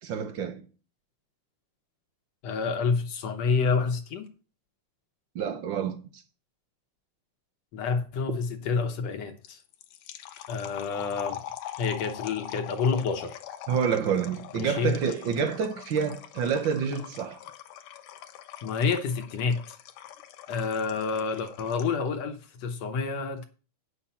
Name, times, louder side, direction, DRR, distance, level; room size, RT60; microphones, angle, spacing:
voice 1, 0.0-0.6 5.3-6.2 13.7-17.4, right 7 dB, 80° right, 1.0 m, -28 dB
voice 2, 2.4-4.3 7.7-9.6 10.5-11.4 11.8-13.4 14.5-14.9 18.6-19.8 20.5-23.5, left 5 dB, 65° left, 2.0 m, -28 dB
sound 1, 9.5-22.1, left 11 dB, 85° left, 2.4 m, -43 dB
9.1 x 7.3 x 5.6 m
omnidirectional pair, 3.6 m